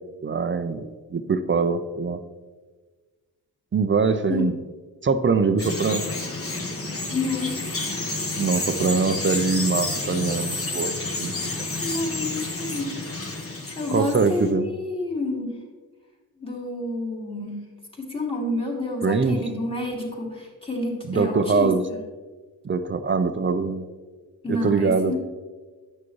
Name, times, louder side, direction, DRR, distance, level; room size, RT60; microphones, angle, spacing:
voice 1, 0.2-2.2 3.7-4.5 5.0-6.0 8.4-11.6 13.9-14.7 19.0-19.4 21.1-21.8 22.6-23.8 24.5-25.1, right 4 dB, 30° right, 10 dB, 0.6 m, -23 dB
Bird vocalization bird call bird song, 5.6-14.5, left 2 dB, 35° left, 1.2 m, -30 dB
voice 2, 7.1-8.1 11.8-13.0 13.7-15.5 16.4-17.6 18.0-21.7 24.4-25.2, left 2 dB, 15° left, -3 dB, 2.2 m, -29 dB
9.4 x 6.0 x 3.1 m, 1.4 s
supercardioid pair, 55°, 39 cm